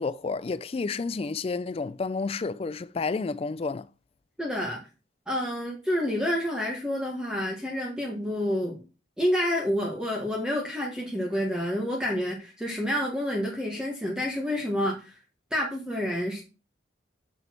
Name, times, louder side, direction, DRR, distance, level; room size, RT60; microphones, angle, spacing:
voice 1, 0.0-3.9, left 4 dB, 30° left, 0.3 m, -30 dB
voice 2, 4.4-4.8 5.3-8.8 9.2-15.2 15.5-16.4, equal, 5° right, 1.4 m, -28 dB
6.7 x 6.2 x 4.4 m
head